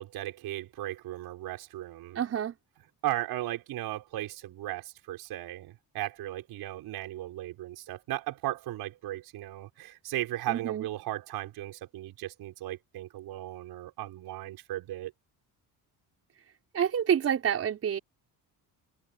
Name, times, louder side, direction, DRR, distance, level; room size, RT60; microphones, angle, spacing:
voice 1, 0.0-2.2 3.0-15.1, right 15 dB, 80° right, 5.2 m, -36 dB
voice 2, 2.2-2.5 10.5-10.9 16.7-18.0, right 9 dB, 40° right, 5.2 m, -28 dB
cardioid pair, 175°, 38 cm